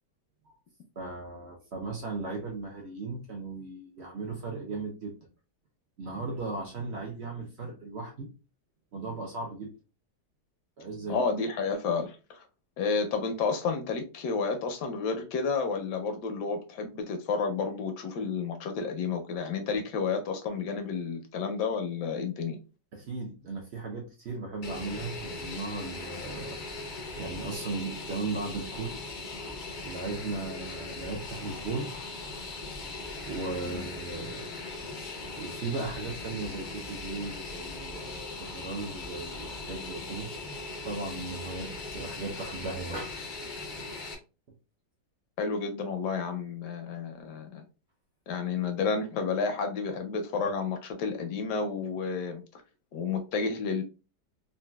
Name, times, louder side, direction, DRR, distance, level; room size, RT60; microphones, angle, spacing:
voice 1, 1.0-5.1 6.0-8.3 8.9-9.7 10.8-11.2 22.9-26.6 27.2-29.0 29.8-32.0 33.2-34.5 35.3-40.3 40.8-43.5, right 3 dB, 65° right, 0.6 m, -37 dB
voice 2, 11.1-12.5 12.8-22.6 33.6-33.8 45.4-47.6 48.3-52.6 52.9-53.8, left 5 dB, 75° left, 1.2 m, -31 dB
Fixed-wing aircraft airplane, 24.6-44.1, left 3 dB, 60° left, 0.5 m, -39 dB
4.0 x 2.2 x 2.2 m
omnidirectional pair, 1.8 m